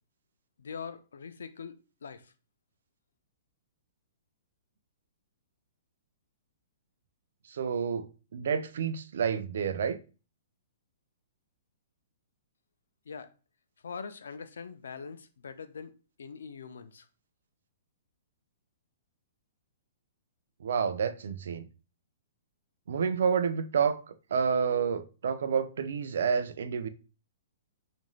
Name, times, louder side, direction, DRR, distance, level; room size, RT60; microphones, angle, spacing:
voice 1, 0.6-1.7 2.0-2.2 13.1-13.3 13.8-15.9 16.2-17.1, left 5 dB, 90° left, 0.4 m, -42 dB
voice 2, 7.5-8.1 8.3-10.0 20.6-21.7 22.9-24.0 24.3-26.9, right 6 dB, 70° right, 0.4 m, -29 dB
3.1 x 2.5 x 2.3 m
hypercardioid pair, 155°, 0 cm